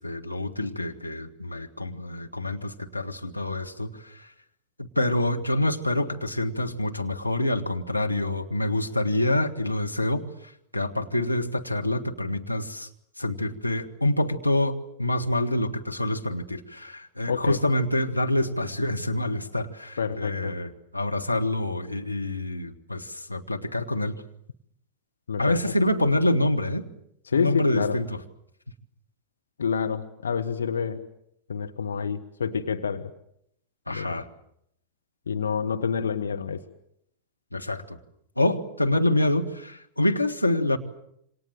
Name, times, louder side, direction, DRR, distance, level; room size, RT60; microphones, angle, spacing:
voice 1, 0.0-4.3 4.8-12.9 13.2-24.2 25.4-26.9 27.3-28.2 33.9-34.3 37.5-38.0 38.4-40.8, left 1 dB, 85° left, 3 dB, 1.9 m, -26 dB
voice 2, 17.3-17.6 20.0-20.5 25.3-25.6 27.3-28.0 29.6-31.0 31.5-33.1 33.9-34.1 35.3-36.6, left 6 dB, 70° left, 7 dB, 1.4 m, -28 dB
27.5 x 25.5 x 7.7 m, 0.74 s
figure-of-eight pair, 90°, 0 cm